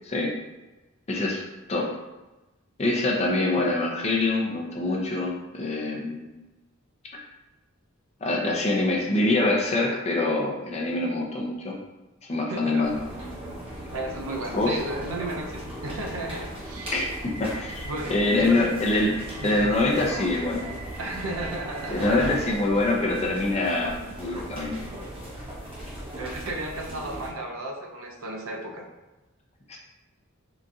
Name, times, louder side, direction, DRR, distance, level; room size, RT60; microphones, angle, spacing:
voice 1, 1.1-1.4 1.7-1.9 2.8-6.3 7.1-7.2 8.2-11.7 12.3-13.0 14.5-14.7 16.9-17.1 17.4-17.8 18.1-19.1 19.4-20.7 21.9-24.7 29.7-29.8, left 2 dB, 30° left, -1 dB, 0.5 m, -25 dB
voice 2, 12.5-12.9 13.9-16.9 17.8-18.7 19.4-19.7 21.0-22.3 26.2-28.8, right 1 dB, 75° right, 1 dB, 0.6 m, -34 dB
sound 1, 12.8-27.3, right 1 dB, 25° right, 1.1 m, -37 dB
3.9 x 2.6 x 2.3 m, 1.1 s
head